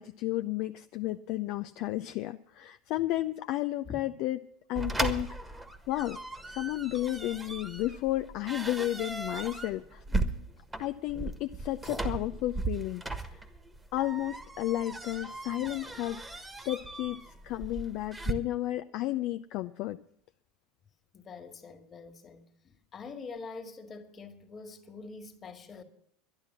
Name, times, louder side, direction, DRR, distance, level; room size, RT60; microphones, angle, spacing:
voice 1, 0.0-4.4 4.7-5.4 5.9-6.2 6.5-10.2 10.8-13.0 13.3-13.4 13.9-20.0, left 15 dB, 55° left, 0.5 m, -33 dB
sound 1, 4.8-18.3, right 2 dB, 10° right, 1.4 m, -37 dB
voice 2, 21.1-25.8, left 4 dB, 30° left, 1.9 m, -45 dB
11.5 x 11.0 x 7.4 m
hypercardioid pair, 85°, 0 cm